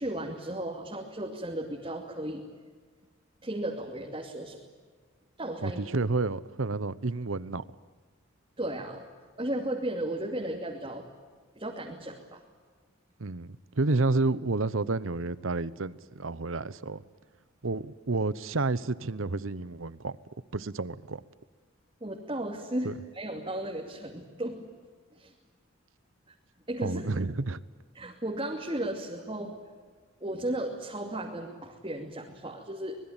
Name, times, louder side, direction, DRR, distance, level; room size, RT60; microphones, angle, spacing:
voice 1, 0.0-2.4 3.4-4.6 5.4-5.8 8.6-9.0 9.4-11.1 11.6-12.4 22.0-24.6 25.1-25.3 26.7-27.1 27.9-29.6 30.2-33.0, right 1 dB, 25° right, 2.7 m, -35 dB
voice 2, 5.6-7.6 13.2-17.0 17.6-20.2 20.5-21.2 22.8-22.9 26.8-27.6, right 3 dB, 80° right, 0.9 m, -30 dB
25.5 x 21.0 x 9.0 m
head